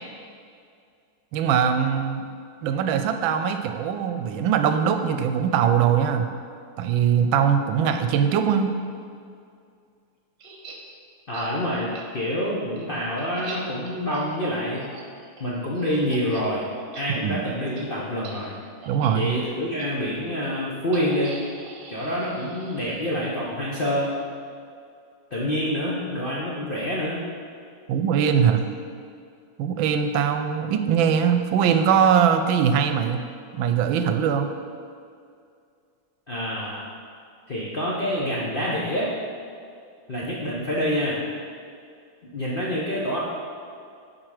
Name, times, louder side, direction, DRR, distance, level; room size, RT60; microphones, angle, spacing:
voice 1, 1.3-2.2 2.6-6.3 6.8-8.7 17.2-17.4 18.9-19.4 27.9-28.6 29.6-33.2 33.5-34.5, right 8 dB, 85° right, 7 dB, 1.3 m, -21 dB
sound 1, 10.4-10.8 11.3-11.5 11.9-12.0 12.5-16.5 16.8-17.0 17.3-17.5 17.8-17.9 18.2-18.4 18.8-19.1 19.8-19.9 20.9-23.3, right 4 dB, 65° right, 1.5 m, -43 dB
voice 2, 11.3-14.9 15.4-16.6 16.9-18.5 19.1-21.3 21.9-24.1 25.3-27.2 36.3-36.8 37.5-39.1 40.1-41.2 42.2-43.2, equal, 50° left, -6 dB, 0.6 m, -27 dB
7.5 x 4.9 x 4.8 m, 2.3 s
omnidirectional pair, 2.1 m